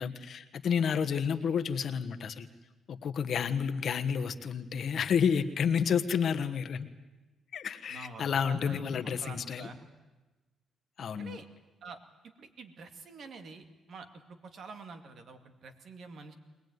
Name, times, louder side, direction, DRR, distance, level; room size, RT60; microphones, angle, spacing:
voice 1, 0.0-2.5 2.9-6.9 7.5-9.7 11.0-11.4, left 7 dB, 60° left, 9 dB, 1.3 m, -30 dB
voice 2, 7.9-9.9 11.2-11.5 11.8-12.0 12.4-16.3, right 4 dB, 60° right, 7 dB, 2.4 m, -47 dB
23.0 x 19.0 x 9.5 m, 1.2 s
cardioid pair, 90°, 0 cm